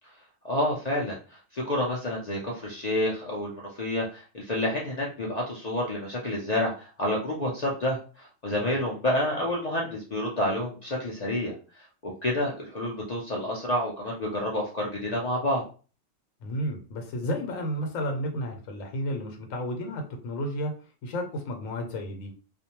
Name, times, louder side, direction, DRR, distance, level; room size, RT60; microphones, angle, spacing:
voice 1, 0.4-11.5 12.0-15.6, left 1 dB, 60° left, -3 dB, 0.4 m, -29 dB
voice 2, 16.4-20.7 21.0-22.3, equal, 80° left, 4 dB, 1.0 m, -32 dB
2.5 x 2.1 x 2.8 m, 0.37 s
omnidirectional pair, 1.4 m